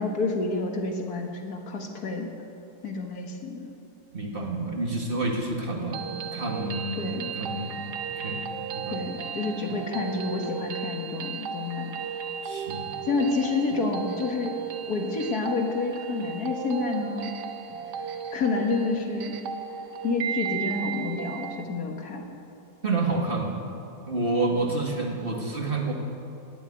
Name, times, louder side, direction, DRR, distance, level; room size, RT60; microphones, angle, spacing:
voice 1, 0.0-2.3 2.8-3.7 7.0-7.3 8.9-11.9 13.1-14.6 14.9-17.3 18.3-19.4 20.0-22.2, left 3 dB, 65° left, 2 dB, 2.0 m, -29 dB
voice 2, 4.1-6.0 6.3-7.8 8.2-8.4 8.7-9.0 12.4-12.9 22.8-23.6 24.1-25.9, right 2 dB, 35° right, 0 dB, 1.9 m, -29 dB
sound 1, 5.7-21.7, right 7 dB, 85° right, 1.5 m, -35 dB
17.5 x 7.7 x 9.7 m, 2.9 s
omnidirectional pair, 1.7 m